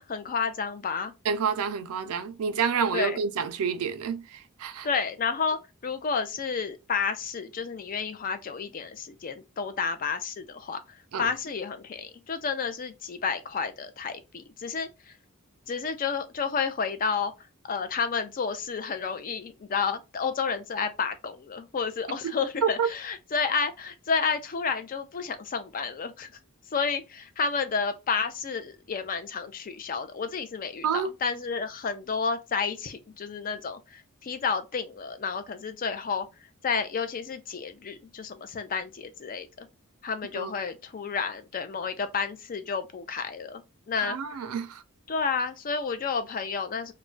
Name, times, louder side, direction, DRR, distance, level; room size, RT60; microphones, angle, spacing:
voice 1, 0.0-1.1 2.9-3.2 4.8-5.6 5.8-10.8 11.2-14.9 15.7-17.3 17.7-26.3 26.7-36.3 36.6-39.7 40.0-43.6 43.9-44.2 45.1-46.9, left 5 dB, 40° left, 0.4 m, -31 dB
voice 2, 1.3-4.9 11.1-11.3 22.6-22.9 30.8-31.1 40.3-40.5 44.0-44.8, right 6 dB, 70° right, 0.4 m, -28 dB
2.3 x 2.1 x 3.7 m
head